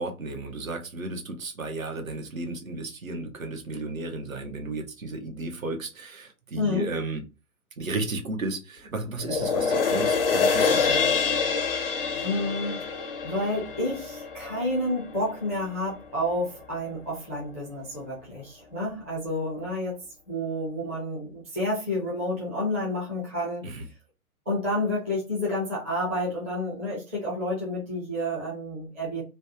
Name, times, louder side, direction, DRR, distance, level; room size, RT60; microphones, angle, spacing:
voice 1, 0.0-7.2 7.8-11.0 23.6-23.9, right 2 dB, 65° right, 5 dB, 0.9 m, -33 dB
voice 2, 6.6-6.9 12.2-20.0 20.3-23.6 24.5-29.2, left 1 dB, 10° right, -7 dB, 0.5 m, -30 dB
sound 1, 9.2-15.8 16.2-16.3, left 5 dB, 40° left, 0.5 m, -26 dB
3.2 x 2.2 x 2.7 m, 0.29 s
figure-of-eight pair, 125°, 44 cm